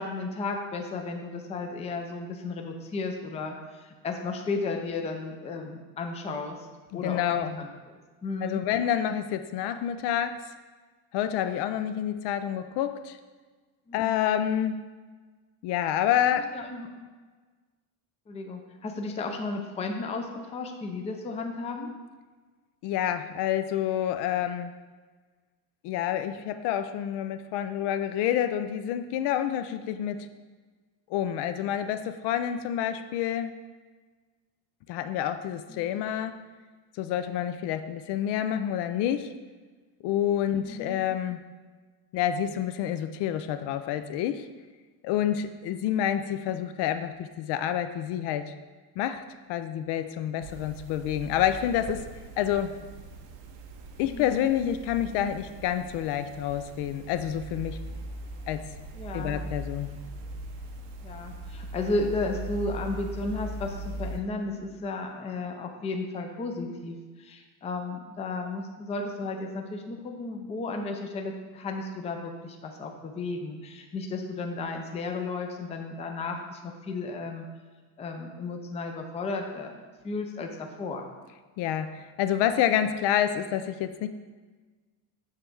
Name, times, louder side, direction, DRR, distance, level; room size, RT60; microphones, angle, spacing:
voice 1, 0.0-6.6 6.9-8.6 13.9-14.2 16.5-16.9 18.3-21.9 35.7-35.9 40.6-41.0 54.0-54.4 58.9-59.4 61.0-77.5 78.0-81.1, left 3 dB, 15° left, 3 dB, 0.4 m, -34 dB
voice 2, 6.9-7.6 8.4-10.4 11.1-13.2 13.9-14.8 15.6-16.5 22.8-24.7 25.8-30.3 31.1-33.5 34.9-36.4 37.0-39.3 40.0-41.4 42.1-44.5 45.0-48.5 49.0-49.2 49.5-52.1 52.4-52.8 54.0-57.8 58.5-58.7 59.1-59.9 81.6-84.1, left 10 dB, 70° left, 10 dB, 0.5 m, -28 dB
sound 1, 50.4-64.2, right 2 dB, 90° right, 0.9 m, -40 dB
7.4 x 3.3 x 6.0 m, 1.4 s
cardioid pair, 170°, 42 cm